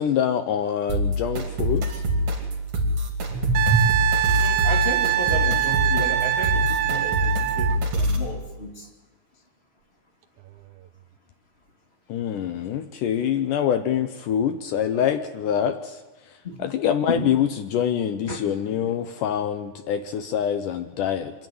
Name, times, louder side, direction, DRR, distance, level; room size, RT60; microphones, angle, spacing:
voice 1, 0.0-1.9 12.1-15.8 16.6-21.3, left 9 dB, 75° left, 8 dB, 1.9 m, -25 dB
sound 1, 0.9-8.3, equal, 50° right, 4.0 m, -25 dB
voice 2, 3.3-3.9 4.4-8.9 16.4-16.6 17.1-17.3 18.3-18.9, right 2 dB, 20° left, 1 dB, 2.0 m, -30 dB
Wind instrument woodwind instrument, 3.5-7.8 10.5-10.6, right 13 dB, 75° right, 1.8 m, -23 dB
26.0 x 10.5 x 9.3 m, 1.2 s
omnidirectional pair, 4.5 m